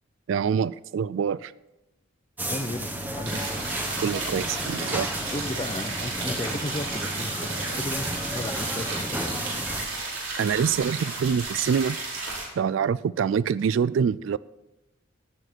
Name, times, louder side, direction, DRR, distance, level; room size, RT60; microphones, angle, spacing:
voice 1, 0.3-1.5 4.0-5.1 10.4-12.0 12.6-14.4, right 7 dB, 70° right, 19 dB, 0.3 m, -25 dB
sound 1, 2.4-9.9, right 1 dB, 10° right, 1.3 m, -33 dB
voice 2, 2.5-3.5 5.3-9.5, left 2 dB, 25° left, 12 dB, 0.6 m, -35 dB
sound 2, 3.2-12.5, right 3 dB, 90° right, 5.0 m, -33 dB
17.0 x 8.9 x 4.4 m, 1.0 s
head